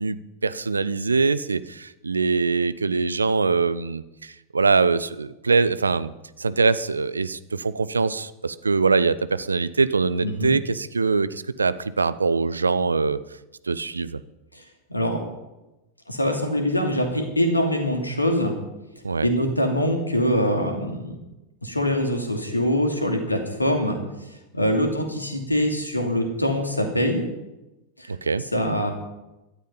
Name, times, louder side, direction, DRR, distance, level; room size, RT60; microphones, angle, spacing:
voice 1, 0.0-6.1 6.4-13.2 13.7-14.2 19.0-19.3 28.1-28.4, right 4 dB, 75° right, 16 dB, 0.7 m, -23 dB
voice 2, 10.2-10.5 14.5-14.6 14.9-15.2 16.1-18.5 19.2-21.2 21.6-24.0 24.5-27.2 28.0-28.1 28.5-28.9, equal, 85° left, 4 dB, 2.7 m, -23 dB
16.5 x 13.0 x 5.6 m, 1.0 s
figure-of-eight pair, 90°, 0 cm